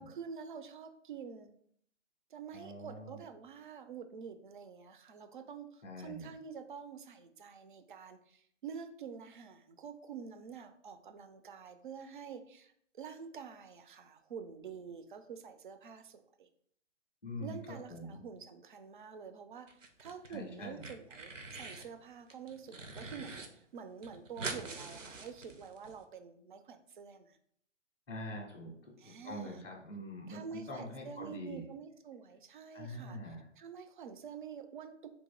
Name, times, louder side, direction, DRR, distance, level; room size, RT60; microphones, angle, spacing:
voice 1, 0.0-1.5 2.3-16.5 17.4-27.4 29.0-29.6 30.3-34.9, right 6 dB, 40° right, 8 dB, 0.5 m, -48 dB
voice 2, 2.5-3.2 5.8-6.3 17.2-18.2 20.3-20.8 28.1-31.6 32.7-33.4, left 1 dB, 10° left, -7 dB, 0.4 m, -44 dB
sound 1, 19.7-20.4 20.6-21.9 22.3-23.5 23.7-23.8 24.0-25.9, right 3 dB, 75° right, 0.8 m, -44 dB
3.9 x 2.5 x 3.7 m, 0.65 s
figure-of-eight pair, 125°, 38 cm